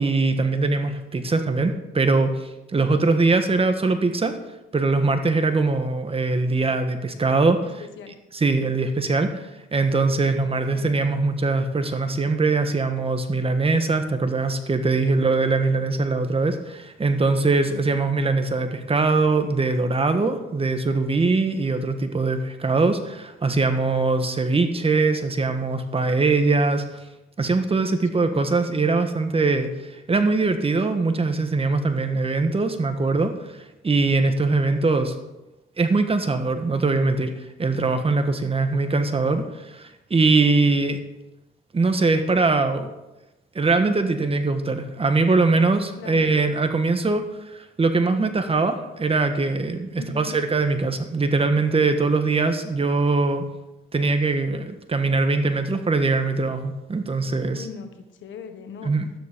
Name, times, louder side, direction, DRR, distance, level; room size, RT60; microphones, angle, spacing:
voice 1, 0.0-4.3 4.7-7.7 8.3-26.8 27.4-33.6 33.8-35.1 35.8-41.0 41.7-42.9 43.5-47.2 47.5-53.4 53.9-57.7 58.8-59.1, right 3 dB, 30° right, 8 dB, 1.5 m, -22 dB
voice 2, 10.5-11.0 15.0-15.2 17.6-18.0 28.1-28.6 46.0-46.3 50.0-50.4 57.5-58.9, left 6 dB, 75° left, 7 dB, 1.6 m, -40 dB
12.5 x 10.0 x 5.2 m, 0.98 s
cardioid pair, 90°, 20 cm